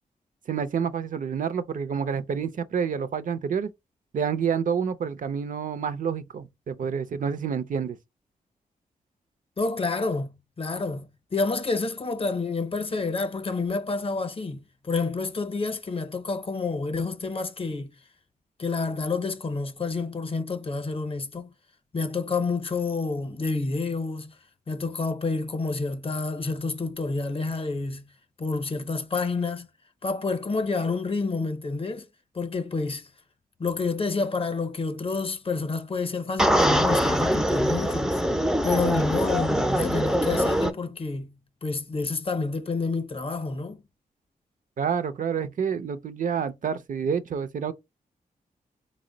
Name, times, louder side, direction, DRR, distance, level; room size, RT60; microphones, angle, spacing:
voice 1, 0.5-3.7 4.1-8.0 44.8-47.7, right 7 dB, 60° right, 0.5 m, -28 dB
voice 2, 9.6-17.9 18.6-21.5 21.9-24.3 24.7-28.1 28.4-29.7 30.0-32.1 32.3-33.1 33.6-38.2 38.6-43.8, left 3 dB, 40° left, 0.7 m, -29 dB
sound 1, 36.4-40.7, equal, 5° right, 0.4 m, -23 dB
3.9 x 2.0 x 3.7 m
cardioid pair, 85°, 15 cm